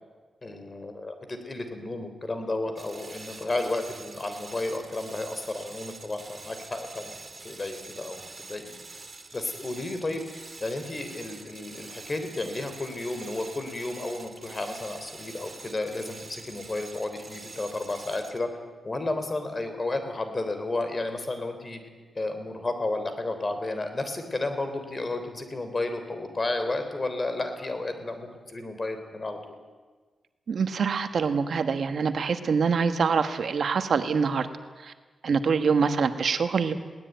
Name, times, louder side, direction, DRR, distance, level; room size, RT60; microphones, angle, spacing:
voice 1, 0.4-8.7 9.3-10.2 10.6-18.5 18.8-21.8 22.2-29.4, left 2 dB, 30° left, 7 dB, 3.6 m, -32 dB
sound 1, 2.8-18.5, right 3 dB, 30° right, 2.5 m, -45 dB
voice 2, 30.5-34.5 34.8-34.9 35.2-36.7, right 5 dB, 65° right, 9 dB, 1.4 m, -25 dB
21.5 x 18.0 x 9.2 m, 1.4 s
wide cardioid pair, 100°, 0 cm